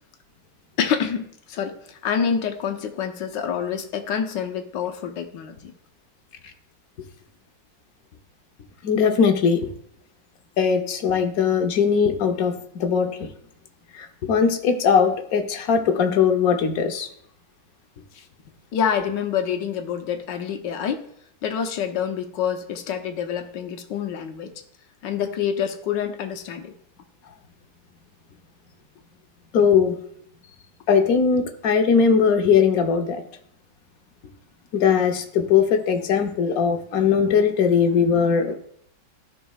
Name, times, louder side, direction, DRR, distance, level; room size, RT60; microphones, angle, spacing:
voice 1, 0.8-5.7 18.1-18.3 18.7-21.0 21.4-24.5 25.0-26.7, left 7 dB, 80° left, 6 dB, 1.5 m, -27 dB
voice 2, 8.8-9.7 10.6-13.3 13.9-17.1 29.5-29.9 30.9-33.2 34.7-38.5, left 6 dB, 60° left, 5 dB, 1.2 m, -20 dB
13.0 x 5.3 x 2.3 m, 0.68 s
omnidirectional pair, 1.9 m